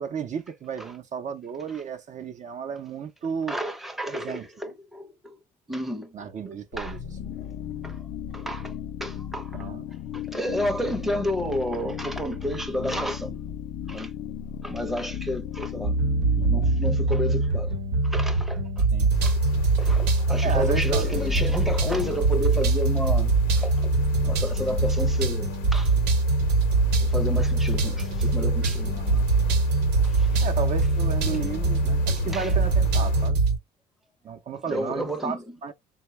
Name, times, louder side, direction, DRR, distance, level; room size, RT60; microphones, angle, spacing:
voice 1, 0.0-3.6 4.1-4.5 6.1-7.0 9.5-9.8 18.9-19.1 20.4-21.2 29.0-29.3 30.4-33.4 34.2-35.7, right 7 dB, 45° right, 0.6 m, -33 dB
voice 2, 3.5-5.4 5.7-7.0 7.8-8.1 8.3-9.7 10.1-13.4 13.9-14.1 14.6-16.0 16.3-17.7 18.0-18.8 19.2-19.4 19.8-23.9 24.2-25.9 27.0-29.0 30.0-30.5 32.3-32.5 34.7-35.4, equal, ahead, 0.7 m, -31 dB
sound 1, 6.7-18.5, left 9 dB, 65° left, 0.5 m, -36 dB
sound 2, 15.8-33.6, right 3 dB, 85° right, 0.9 m, -23 dB
sound 3, 19.1-33.3, left 8 dB, 80° left, 0.8 m, -36 dB
3.7 x 2.2 x 3.0 m
cardioid pair, 110°, 17 cm